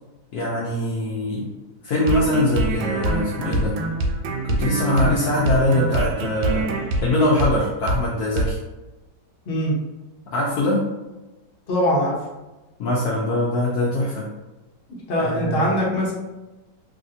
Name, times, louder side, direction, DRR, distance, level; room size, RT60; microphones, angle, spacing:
voice 1, 0.3-1.5 1.8-3.8 4.5-6.7 7.0-8.6 10.3-10.9 12.8-14.3 15.2-15.7, left 1 dB, 70° left, -5 dB, 1.0 m, -22 dB
sound 1, 2.0-7.6 7.9-8.0 8.4-8.5, right 2 dB, 85° right, 1.2 m, -25 dB
voice 2, 11.7-12.1 15.1-16.1, equal, 45° left, -4 dB, 0.9 m, -21 dB
3.2 x 2.6 x 2.6 m, 1.1 s
omnidirectional pair, 1.9 m